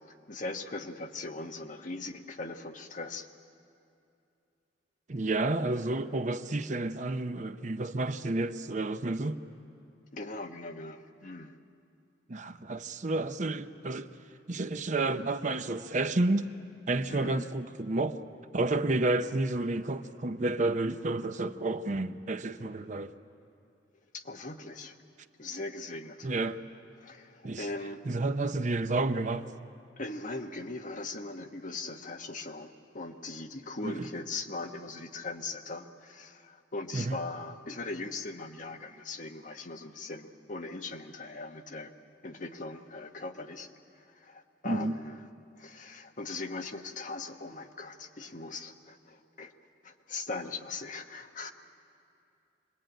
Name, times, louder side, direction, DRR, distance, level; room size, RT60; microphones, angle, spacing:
voice 1, 0.3-3.3 10.1-11.5 17.1-17.5 24.1-25.0 25.4-26.3 27.0-28.1 30.0-41.9 42.2-43.7 44.0-45.3 45.6-49.5 49.8-51.5, left 3 dB, 45° left, 1.2 m, -40 dB
voice 2, 5.1-9.4 12.3-14.1 14.5-16.5 16.9-18.2 18.5-23.1 26.2-26.6 27.4-27.7 28.1-29.5 33.8-33.9 36.9-37.2 44.6-45.0, right 2 dB, 45° right, 0.7 m, -30 dB
26.0 x 21.5 x 9.1 m
head